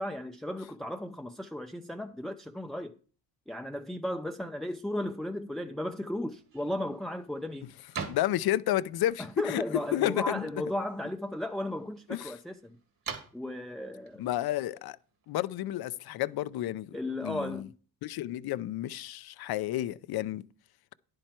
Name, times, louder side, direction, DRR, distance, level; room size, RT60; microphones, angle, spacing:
voice 1, 0.0-2.9 3.5-7.7 9.2-12.8 13.3-14.2 16.9-17.7, left 1 dB, ahead, 0.5 m, -35 dB
sound 1, 6.3-15.5, right 5 dB, 55° right, 2.4 m, -47 dB
voice 2, 8.0-9.6 9.9-10.5 12.1-12.3 14.2-15.0 15.3-16.9 17.2-17.7 18.0-20.4, left 14 dB, 65° left, 0.6 m, -31 dB
10.5 x 7.8 x 4.4 m
cardioid pair, 115°, 40 cm